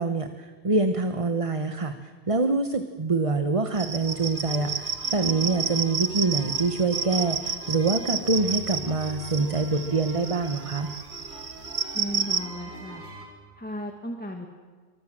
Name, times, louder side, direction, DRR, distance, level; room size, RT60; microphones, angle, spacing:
voice 1, 0.0-1.9 2.3-10.9, right 3 dB, 30° right, 8 dB, 1.2 m, -25 dB
sound 1, 3.8-12.4, right 5 dB, 50° right, 1.3 m, -31 dB
sound 2, 4.0-13.3, left 1 dB, 80° right, 5.7 m, -44 dB
voice 2, 11.9-13.0 13.6-14.5, equal, 10° left, 3 dB, 2.0 m, -35 dB
26.5 x 24.5 x 7.7 m, 1.5 s
omnidirectional pair, 1.1 m